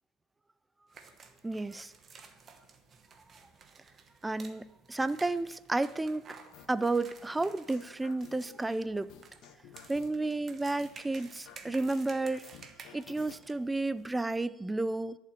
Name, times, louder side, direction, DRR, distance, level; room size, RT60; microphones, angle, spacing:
sound 1, 0.9-14.2, right 5 dB, 25° right, 1.1 m, -54 dB
voice 1, 1.4-1.9 4.2-6.2 6.7-9.1 9.9-12.5 12.9-15.2, right 2 dB, 5° right, 16 dB, 0.4 m, -32 dB
sound 2, 6.5-6.9 7.4-8.8 9.1-10.3 10.8-13.4, left 9 dB, 50° left, 1.3 m, -53 dB
12.0 x 7.4 x 8.4 m, 1.0 s
cardioid pair, 165°, 0 cm